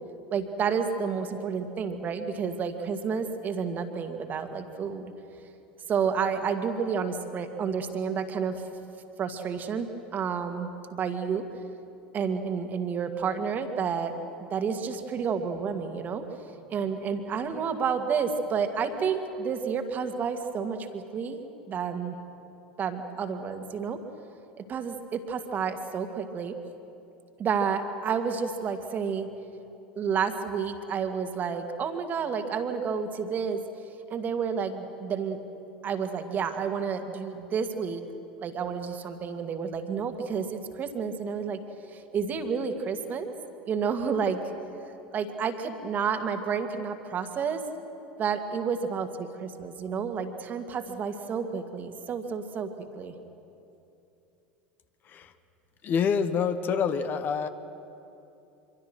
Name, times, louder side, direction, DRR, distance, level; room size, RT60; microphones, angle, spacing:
voice 1, 0.3-5.1 5.9-8.6 9.2-9.9 10.1-11.4 12.1-14.2 14.5-16.2 16.7-22.2 22.8-24.0 24.6-26.5 27.4-29.3 30.0-33.6 34.1-35.4 35.8-38.0 38.4-41.6 41.9-43.3 43.7-44.4 45.1-47.6 48.2-53.2, right 6 dB, 35° right, 7 dB, 2.1 m, -30 dB
voice 2, 55.8-57.5, left 6 dB, 35° left, 11 dB, 1.2 m, -26 dB
25.5 x 24.5 x 6.3 m, 2.8 s
figure-of-eight pair, 80°, 5 cm